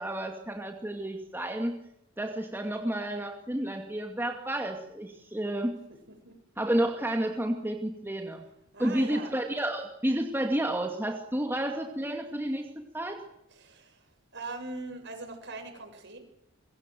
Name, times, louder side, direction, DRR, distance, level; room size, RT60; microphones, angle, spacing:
voice 1, 0.0-1.8 2.2-5.8 6.6-8.5 8.8-13.2, right 1 dB, 10° right, 3 dB, 2.3 m, -31 dB
voice 2, 8.7-9.3 13.5-16.2, right 2 dB, 55° right, 5 dB, 7.6 m, -41 dB
25.0 x 23.5 x 7.7 m, 0.79 s
head